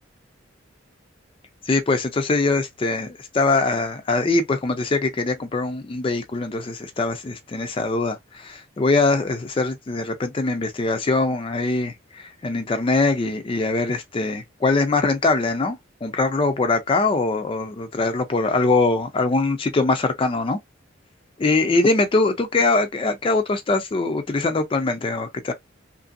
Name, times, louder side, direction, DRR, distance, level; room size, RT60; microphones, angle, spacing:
voice 1, 1.6-20.6 21.4-25.5, left 3 dB, 25° left, 0.3 m, -22 dB
2.9 x 2.5 x 2.4 m
head